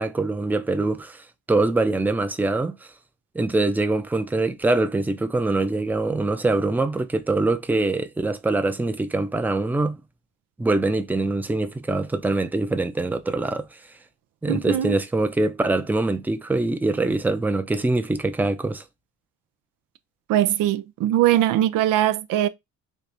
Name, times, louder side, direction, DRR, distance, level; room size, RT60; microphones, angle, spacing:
voice 1, 0.0-2.9 3.3-10.0 10.6-13.6 14.4-18.8, right 2 dB, 5° right, 0.5 m, -23 dB
voice 2, 14.5-15.0 20.3-22.5, right 13 dB, 80° right, 0.5 m, -21 dB
4.1 x 2.5 x 3.4 m
cardioid pair, 80°, 32 cm